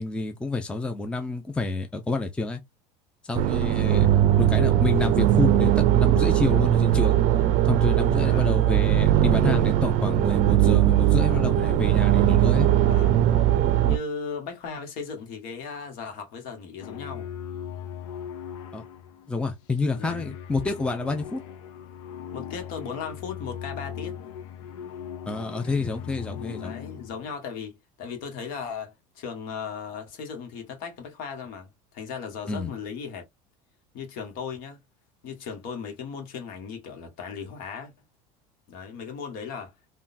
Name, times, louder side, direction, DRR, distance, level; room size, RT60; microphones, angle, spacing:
voice 1, 0.0-2.6 3.2-4.1 4.4-7.2 7.6-12.7 18.7-18.8 19.3-21.4 25.3-26.7 32.5-32.7, left 3 dB, 5° left, 0.5 m, -28 dB
sound 1, 3.3-14.0, right 12 dB, 55° right, 0.5 m, -20 dB
voice 2, 3.7-4.2 8.2-8.6 11.2-11.5 12.9-13.2 13.8-17.3 19.9-20.3 22.3-24.1 26.6-33.2 33.9-34.8 35.2-37.9 38.7-39.7, left 6 dB, 65° left, 1.3 m, -37 dB
sound 2, 16.8-27.3, left 9 dB, 85° left, 0.6 m, -39 dB
3.6 x 2.3 x 2.5 m
supercardioid pair, 115°, 16 cm